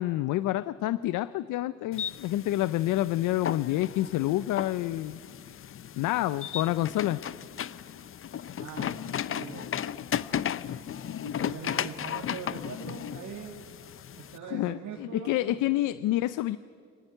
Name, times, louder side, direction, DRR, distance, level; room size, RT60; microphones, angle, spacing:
voice 1, 0.0-5.2 6.0-7.2 14.5-16.6, left 15 dB, 90° left, 16 dB, 0.5 m, -28 dB
sound 1, 1.9-14.4, left 9 dB, 45° left, 0.6 m, -35 dB
voice 2, 8.5-9.0 9.3-9.6 11.2-13.6 14.2-15.6, right 7 dB, 75° right, 0 dB, 2.1 m, -42 dB
24.5 x 18.5 x 9.2 m, 2.3 s
cardioid pair, 90°, 30 cm